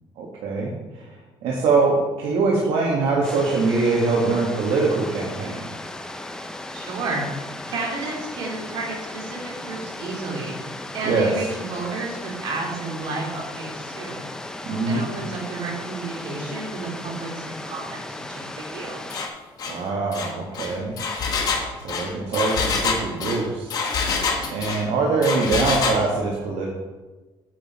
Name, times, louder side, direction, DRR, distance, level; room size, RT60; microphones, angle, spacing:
voice 1, 0.2-1.1 1.4-5.6 11.0-11.3 14.6-15.0 19.7-21.0 21.8-23.8 24.5-26.7, right 3 dB, 80° right, -3 dB, 1.5 m, -23 dB
sound 1, 3.2-19.3, left 2 dB, 5° left, 0.5 m, -36 dB
voice 2, 6.7-7.2 7.7-14.2 14.8-19.0, right 3 dB, 65° right, -2 dB, 2.9 m, -32 dB
Engine, 19.1-19.3 19.6-19.8 20.1-24.8 25.2-26.0, left 4 dB, 45° left, 1.4 m, -26 dB
8.3 x 7.9 x 4.2 m, 1.2 s
cardioid pair, 165°, 9 cm